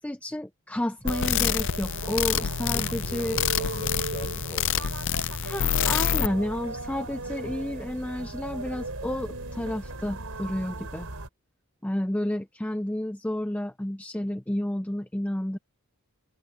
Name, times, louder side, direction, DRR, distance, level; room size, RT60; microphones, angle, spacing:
voice 1, 0.0-3.4 5.4-11.1 11.8-15.6, left 1 dB, 5° left, 0.5 m, -31 dB
sound 1, 1.0-11.3, right 2 dB, 75° right, 4.4 m, -36 dB
sound 2, 1.1-6.3, left 9 dB, 60° left, 0.5 m, -27 dB
voice 2, 2.7-5.1, left 1 dB, 25° left, 6.9 m, -41 dB
head